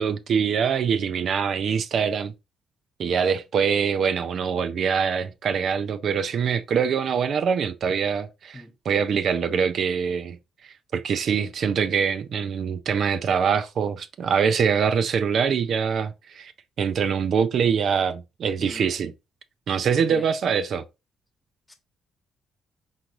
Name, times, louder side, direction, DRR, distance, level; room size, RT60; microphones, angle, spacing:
voice 1, 0.0-2.3 3.0-10.4 10.9-16.5 16.8-19.1 19.7-20.8, right 6 dB, 60° right, 0.4 m, -24 dB
voice 2, 8.5-8.7 18.6-18.9 20.1-20.3 21.7-21.8, left 1 dB, 15° left, 1.1 m, -37 dB
3.9 x 3.6 x 3.0 m
cardioid pair, 90°, 0 cm